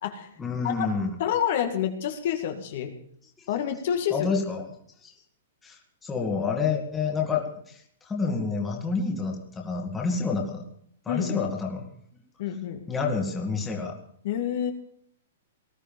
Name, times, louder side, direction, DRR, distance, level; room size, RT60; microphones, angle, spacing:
voice 1, 0.4-1.2 4.1-4.7 5.0-5.1 5.6-10.6 11.1-11.8 12.9-14.0, left 4 dB, 10° left, 1 dB, 2.2 m, -28 dB
voice 2, 1.2-2.9 3.5-4.3 11.1-11.4 12.4-12.8 14.2-14.7, left 9 dB, 55° left, 5 dB, 2.1 m, -28 dB
19.5 x 12.5 x 5.4 m, 0.64 s
hypercardioid pair, 160°, 0 cm